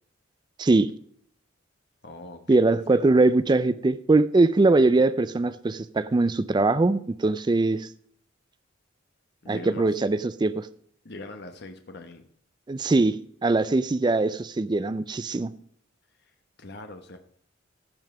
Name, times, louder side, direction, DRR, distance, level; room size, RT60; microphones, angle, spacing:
voice 1, 0.6-0.9 2.5-7.9 9.5-10.7 12.7-15.5, right 2 dB, 20° right, 0.3 m, -22 dB
voice 2, 2.0-2.6 2.9-3.0 9.4-9.9 11.0-12.2 16.2-17.2, left 2 dB, 55° left, 1.1 m, -42 dB
15.0 x 5.5 x 4.9 m
head